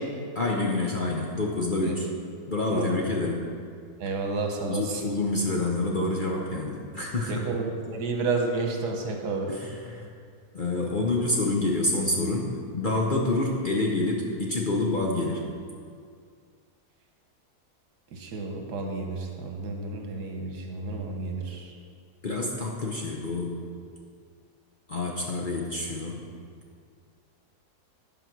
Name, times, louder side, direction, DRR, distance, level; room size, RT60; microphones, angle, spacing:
voice 1, 0.3-2.1 2.5-3.5 4.6-7.5 9.5-10.1 10.5-15.4 22.2-23.6 24.9-26.2, left 2 dB, 40° left, -2 dB, 0.8 m, -27 dB
voice 2, 4.0-5.0 7.3-9.5 18.1-21.7, right 3 dB, 80° right, 2 dB, 1.6 m, -31 dB
11.0 x 5.1 x 6.1 m, 2.2 s
omnidirectional pair, 1.7 m